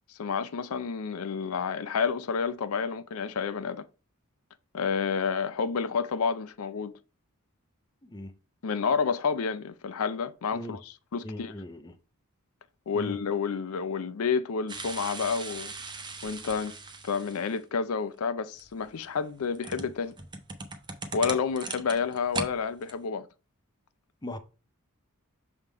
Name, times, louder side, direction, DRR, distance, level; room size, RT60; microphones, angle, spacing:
voice 1, 0.1-3.9 4.7-6.9 8.6-10.8 11.1-11.5 12.9-15.7 16.2-16.7 17.0-20.1 21.1-23.3, left 5 dB, 80° left, 0.5 m, -29 dB
voice 2, 8.0-8.3 10.5-10.8 11.2-12.0 12.9-13.2 24.2-24.4, left 1 dB, 20° left, 0.6 m, -39 dB
sound 1, 14.7-17.6 18.6-22.5 22.8-22.9, right 3 dB, 20° right, 0.8 m, -39 dB
6.7 x 3.6 x 4.6 m
head